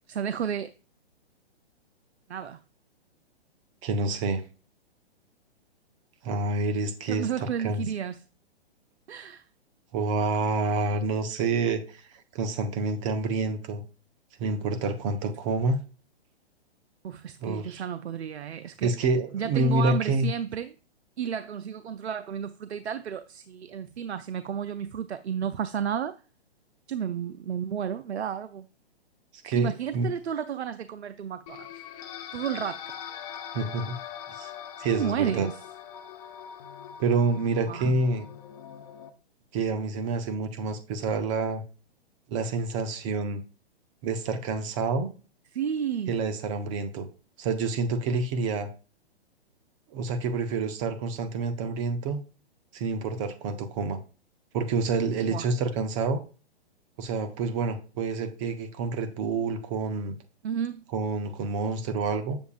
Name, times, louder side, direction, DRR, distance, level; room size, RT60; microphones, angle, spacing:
voice 1, 0.1-0.7 2.3-2.6 7.1-8.3 9.1-9.4 17.0-18.9 19.3-20.7 21.2-26.2 26.9-28.7 29.5-31.7 32.3-32.9 34.9-35.6 37.7-38.0 45.5-46.2 55.3-55.5 60.4-60.8, right 8 dB, 85° right, 0.5 m, -32 dB
voice 2, 3.8-4.4 6.2-7.3 7.6-7.9 9.9-12.0 12.3-13.8 14.4-15.8 17.4-17.8 18.8-20.3 29.4-30.1 33.5-34.0 34.3-34.5 34.8-35.5 37.0-38.3 39.5-41.6 42.3-43.4 44.0-45.1 46.1-47.1 47.4-48.7 49.9-52.2 52.7-54.0 54.5-56.2 57.0-60.2 60.9-62.4, right 3 dB, 30° right, 0.7 m, -28 dB
sound 1, 31.5-39.1, left 9 dB, 35° left, 0.8 m, -42 dB
8.0 x 7.2 x 2.4 m
hypercardioid pair, 130°, 32 cm